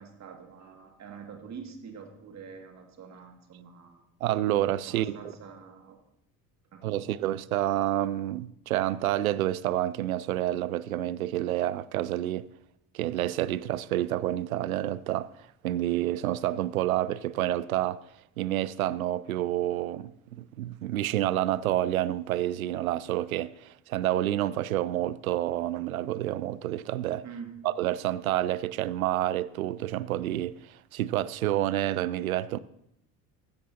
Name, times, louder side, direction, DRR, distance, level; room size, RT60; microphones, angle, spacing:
voice 1, 0.0-4.1 4.9-6.0 6.7-7.2 27.2-27.6, right 6 dB, 40° right, 2.2 m, -45 dB
voice 2, 4.2-5.1 6.8-12.5 12.9-15.3 15.6-18.0 18.4-27.2 27.6-32.6, right 13 dB, 80° right, 0.5 m, -29 dB
15.5 x 12.5 x 2.9 m
figure-of-eight pair, 60°, 42 cm